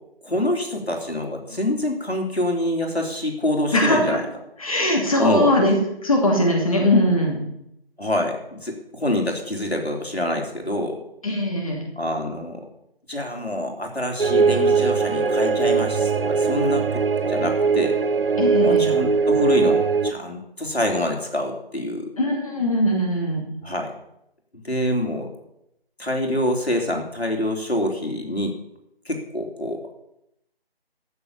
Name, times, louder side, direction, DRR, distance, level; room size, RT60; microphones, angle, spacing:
voice 1, 0.2-4.2 5.2-5.6 8.0-11.0 12.0-12.7 13.1-16.8 17.2-18.0 18.6-22.1 23.6-23.9 24.6-25.3 26.0-28.6 29.1-29.9, left 1 dB, 90° left, 2 dB, 3.5 m, -26 dB
voice 2, 3.7-4.2 4.6-5.8 6.0-7.4 11.2-11.8 18.4-18.9 22.2-23.5, left 1 dB, 35° left, 0 dB, 2.7 m, -20 dB
sound 1, 14.2-20.1, right 5 dB, 65° right, 0.6 m, -20 dB
14.0 x 7.0 x 7.1 m, 0.79 s
figure-of-eight pair, 160°, 31 cm